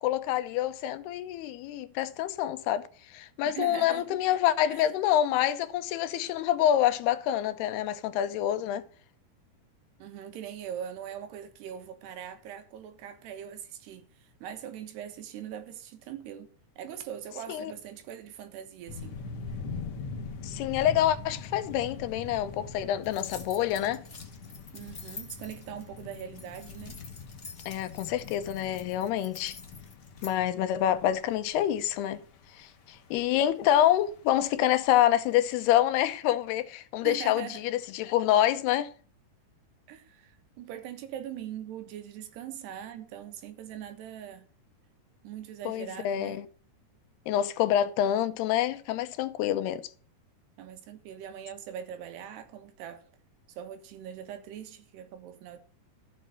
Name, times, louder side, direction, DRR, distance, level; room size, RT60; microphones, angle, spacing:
voice 1, 0.0-2.9 3.1-8.8 17.5-17.7 20.4-24.0 27.7-29.6 30.2-32.2 32.6-32.7 33.1-38.9 45.7-46.5 47.3-49.8, left 11 dB, 80° left, 2.8 m, -27 dB
voice 2, 3.5-4.1 4.7-4.8 10.0-16.5 16.8-19.2 24.7-27.0 37.0-37.6 39.9-44.5 45.2-46.4 50.6-53.1 53.5-55.6, right 9 dB, 80° right, 3.5 m, -41 dB
sound 1, 18.9-35.8, left 4 dB, 60° left, 1.5 m, -43 dB
sound 2, 23.0-30.3, left 3 dB, 45° left, 0.9 m, -48 dB
13.0 x 7.2 x 7.7 m
omnidirectional pair, 4.7 m